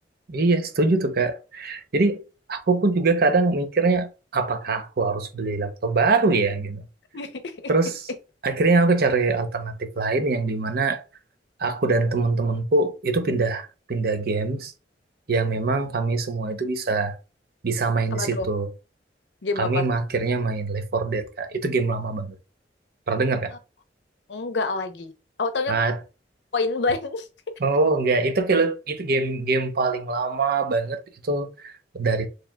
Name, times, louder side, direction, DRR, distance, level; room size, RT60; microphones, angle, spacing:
voice 1, 0.3-2.2 2.5-6.8 7.7-8.0 8.4-11.0 11.6-14.7 15.3-17.2 17.6-18.7 19.6-22.4 23.1-23.5 25.7-26.0 27.6-32.3, right 3 dB, 60° right, 0.7 m, -23 dB
voice 2, 7.1-7.7 18.1-18.5 19.4-19.9 24.3-25.1 25.4-25.7 26.5-27.3, left 3 dB, 75° left, 0.7 m, -27 dB
4.6 x 3.2 x 2.2 m
head